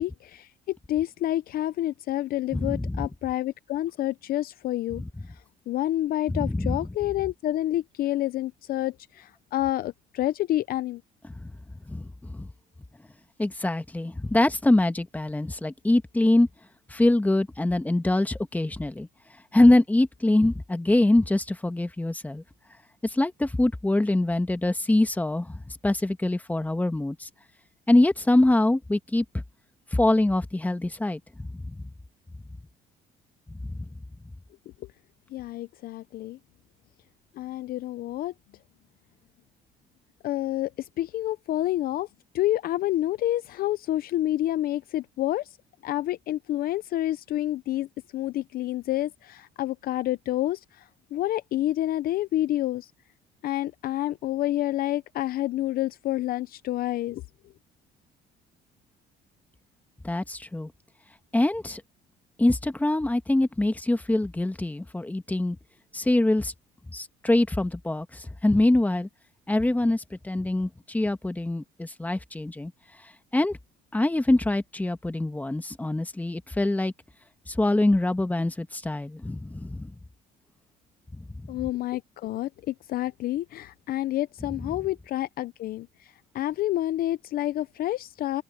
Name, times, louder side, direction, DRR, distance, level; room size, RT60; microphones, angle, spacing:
voice 1, 0.0-5.0 5.3-5.4 5.7-11.0 35.3-36.4 37.4-38.3 40.2-42.1 42.3-45.6 45.8-47.9 48.1-52.9 53.4-57.2 81.5-88.4, left 14 dB, 60° left, 0.5 m, -28 dB
voice 2, 2.5-3.1 6.3-6.8 11.9-12.5 13.4-16.5 16.9-19.1 19.5-22.4 23.0-27.3 27.9-29.4 29.9-31.8 33.7-33.9 60.0-60.7 61.3-61.8 62.4-65.6 65.9-66.5 66.9-69.1 69.5-72.7 73.3-73.6 73.9-76.9 77.5-79.9 81.4-81.5, left 1 dB, 10° left, 1.3 m, -24 dB
open air
cardioid pair, 110°, 17 cm